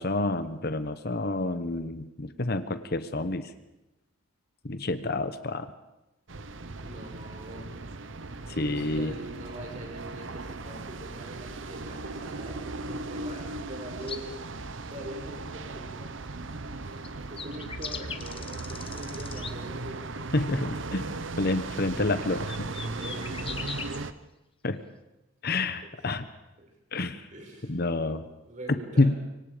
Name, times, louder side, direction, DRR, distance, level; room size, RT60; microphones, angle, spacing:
voice 1, 0.0-3.5 4.6-5.7 8.5-9.1 20.3-21.1 21.4-22.6 24.6-24.8 25.4-26.2 26.9-27.3 27.7-28.3 29.0-29.1, left 2 dB, 50° left, 11 dB, 1.0 m, -28 dB
sound 1, 6.3-24.1, right 3 dB, 65° right, 1.0 m, -37 dB
voice 2, 6.8-7.7 8.7-14.4 14.8-16.1 17.3-20.2 22.6-24.1 26.6-26.7 27.3-27.8 28.5-29.2, right 1 dB, 35° right, 1 dB, 6.0 m, -43 dB
sound 2, 14.0-14.2 17.0-17.1 17.4-19.5 22.3-24.0, left 6 dB, 25° left, 1.2 m, -39 dB
25.0 x 24.5 x 5.1 m, 0.96 s
head